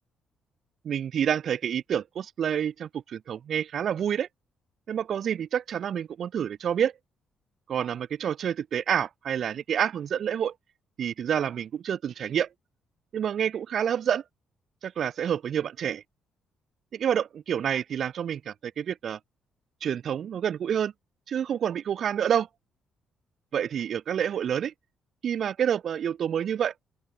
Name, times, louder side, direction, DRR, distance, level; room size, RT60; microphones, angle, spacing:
voice 1, 0.8-4.3 4.9-6.9 7.7-10.5 11.0-12.5 13.1-14.2 14.8-16.0 16.9-19.2 19.8-20.9 21.3-22.5 23.5-24.7 25.2-26.7, right 9 dB, 55° right, 2.0 m, -28 dB
open air
cardioid pair, 125°, 0 cm